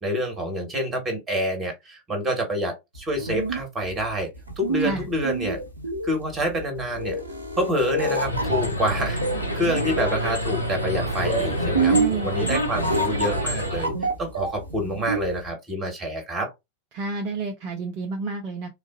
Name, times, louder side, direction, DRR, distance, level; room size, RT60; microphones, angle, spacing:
voice 1, 0.0-4.3 4.6-5.6 6.0-7.2 7.5-13.9 14.2-16.5, equal, 20° right, 1.5 m, -27 dB
sound 1, 3.0-15.5, right 3 dB, 80° right, 0.8 m, -28 dB
sound 2, 8.2-13.9, equal, 85° left, 0.7 m, -27 dB
voice 2, 11.9-12.5 12.7-13.0 16.9-18.7, right 4 dB, 40° right, 0.6 m, -30 dB
3.9 x 2.4 x 2.5 m
figure-of-eight pair, 90°, 0 cm